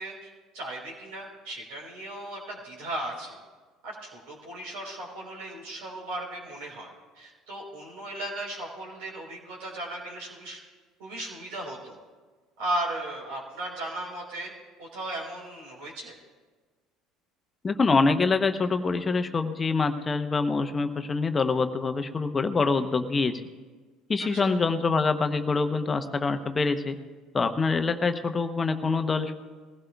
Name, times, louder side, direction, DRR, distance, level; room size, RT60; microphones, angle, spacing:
voice 1, 0.0-3.4 3.8-10.6 11.0-12.0 12.6-14.5 14.8-16.2 24.2-24.5, right 1 dB, 75° right, -2 dB, 3.8 m, -36 dB
voice 2, 17.6-23.4 24.1-27.0 27.3-29.4, left 4 dB, 30° left, 8 dB, 0.8 m, -25 dB
21.5 x 16.0 x 2.3 m, 1.4 s
hypercardioid pair, 65°, 0 cm